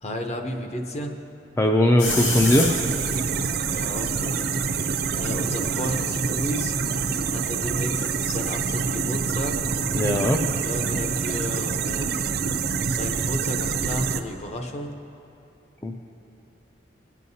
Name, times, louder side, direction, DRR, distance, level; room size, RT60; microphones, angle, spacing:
voice 1, 0.0-1.1 3.7-4.5 5.1-6.8 7.3-9.6 10.6-12.4 12.9-14.9, left 1 dB, 35° left, 3 dB, 0.8 m, -32 dB
voice 2, 1.6-2.7 9.9-10.4 15.8-16.0, left 1 dB, 15° left, 1 dB, 0.4 m, -19 dB
sound 1, 2.0-8.0, left 6 dB, 90° left, 0.8 m, -35 dB
sound 2, 2.0-14.2, right 5 dB, 55° right, 0.5 m, -26 dB
18.5 x 9.2 x 2.8 m, 2.8 s
head